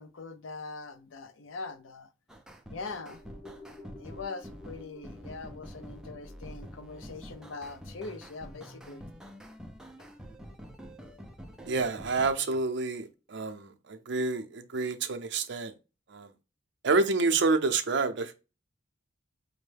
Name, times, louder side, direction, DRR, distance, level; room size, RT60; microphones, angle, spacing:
voice 1, 0.0-2.1 2.7-3.2 4.0-9.0 10.0-10.1, left 3 dB, 70° left, 0.5 m, -42 dB
sound 1, 2.3-12.4, equal, 5° right, 0.4 m, -47 dB
sound 2, 3.1-11.5 11.9-12.0, left 2 dB, 45° left, 2.1 m, -53 dB
voice 2, 11.7-15.7 16.1-16.3 16.8-18.3, right 3 dB, 60° right, 0.5 m, -28 dB
5.3 x 2.1 x 3.3 m
head